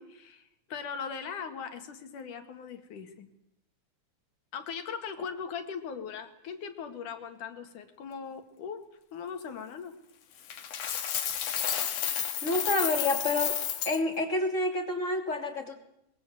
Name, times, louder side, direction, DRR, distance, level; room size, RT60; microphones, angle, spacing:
voice 1, 0.0-3.3 4.5-8.8 9.1-10.0, left 6 dB, 85° left, 7 dB, 3.5 m, -39 dB
Coin (dropping), 10.5-14.0, left 9 dB, 60° left, 2.5 m, -31 dB
voice 2, 12.4-13.6 13.8-15.8, left 2 dB, 25° left, 4 dB, 3.0 m, -28 dB
22.5 x 22.5 x 7.8 m, 0.81 s
omnidirectional pair, 3.5 m